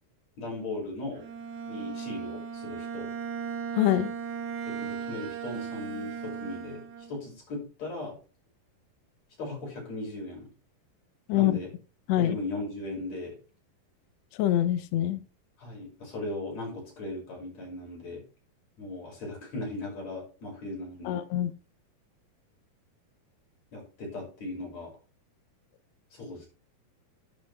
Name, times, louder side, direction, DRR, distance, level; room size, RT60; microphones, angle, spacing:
voice 1, 0.4-1.2 1.7-3.1 4.7-6.8 7.1-8.2 9.4-10.5 11.3-11.7 12.2-13.4 15.6-18.2 18.8-21.2 23.7-24.9 26.1-26.5, left 2 dB, 45° left, -1 dB, 6.8 m, -37 dB
Bowed string instrument, 1.1-7.2, right 6 dB, 55° right, 3.0 m, -37 dB
voice 2, 3.8-4.1 11.3-11.5 12.1-12.3 14.4-15.2 21.1-21.5, left 13 dB, 90° left, 12 dB, 1.5 m, -24 dB
10.5 x 10.5 x 3.5 m, 0.35 s
omnidirectional pair, 4.2 m